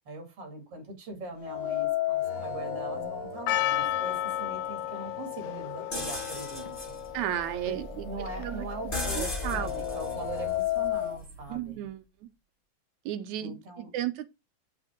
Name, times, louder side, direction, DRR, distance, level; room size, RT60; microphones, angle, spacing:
voice 1, 0.0-7.0 7.6-11.9 13.4-14.0, right 2 dB, 45° right, 3.3 m, -41 dB
sound 1, 1.4-5.5 5.8-5.9 6.9-7.0 7.4-11.2, left 10 dB, 40° left, 1.2 m, -34 dB
Percussion, 3.5-8.7, left 13 dB, 90° left, 2.3 m, -33 dB
sound 2, 5.9-11.7, left 2 dB, 20° left, 1.5 m, -38 dB
voice 2, 7.1-8.7 9.2-9.7 11.5-12.0 13.1-13.6 13.9-14.3, right 12 dB, 75° right, 1.8 m, -33 dB
7.2 x 6.9 x 3.7 m
omnidirectional pair, 4.0 m